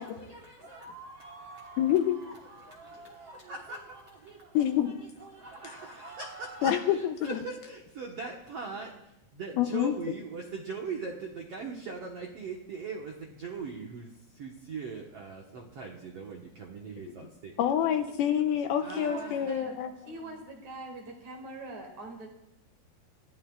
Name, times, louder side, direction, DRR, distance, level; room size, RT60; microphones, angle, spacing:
voice 1, 0.0-4.6 4.8-17.5 18.8-19.5, right 4 dB, 80° right, -1 dB, 1.3 m, -41 dB
voice 2, 1.8-2.2 4.5-5.0 6.6-7.4 9.6-9.9 17.6-19.9, left 10 dB, 80° left, 6 dB, 2.3 m, -27 dB
voice 3, 18.9-19.7 20.0-22.3, right 2 dB, 50° right, 2 dB, 2.8 m, -42 dB
27.5 x 14.5 x 2.4 m, 0.85 s
omnidirectional pair, 4.9 m